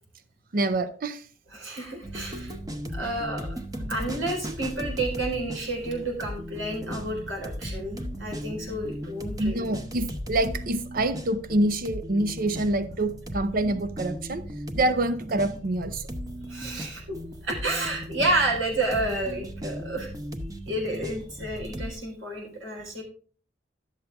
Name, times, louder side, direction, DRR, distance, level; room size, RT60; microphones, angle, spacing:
voice 1, 0.5-1.2 4.5-4.6 9.4-14.4 14.7-16.0 16.7-16.8, right 1 dB, 45° right, 0.6 m, -26 dB
voice 2, 1.5-2.5 2.9-3.5 3.9-9.7 16.4-17.0 17.4-20.1 20.7-23.0, right 2 dB, 90° right, 4.1 m, -30 dB
sound 1, 2.0-21.9, equal, 20° right, 0.8 m, -37 dB
11.5 x 7.4 x 3.4 m
head